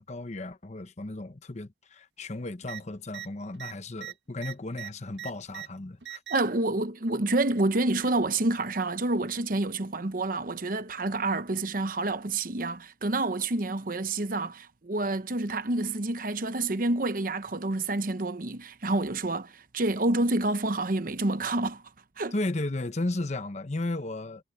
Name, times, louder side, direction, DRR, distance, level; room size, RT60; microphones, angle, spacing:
voice 1, 0.0-6.2 22.3-24.4, left 2 dB, 40° left, 0.9 m, -34 dB
sound 1, 2.6-2.8 3.1-3.3 3.5-5.7 6.0-6.6 7.6-8.2 9.3-9.4, right 11 dB, 75° right, 1.5 m, -41 dB
voice 2, 6.3-21.8 22.2-22.3, right 2 dB, 50° right, 1.0 m, -28 dB
head